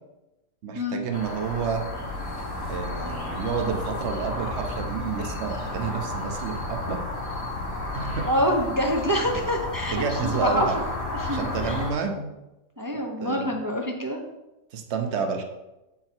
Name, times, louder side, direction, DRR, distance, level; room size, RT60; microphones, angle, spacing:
voice 1, 0.6-1.8 2.7-7.0 7.9-8.3 9.9-10.7 11.3-12.3 13.2-13.6 14.7-15.4, right 6 dB, 50° right, 4 dB, 1.1 m, -29 dB
sound 1, 1.1-11.9, left 2 dB, 75° left, 2.1 m, -32 dB
voice 2, 8.3-10.7 11.1-11.8 12.8-14.2, equal, 20° right, 1 dB, 0.5 m, -26 dB
8.3 x 5.8 x 4.5 m, 0.97 s
omnidirectional pair, 1.7 m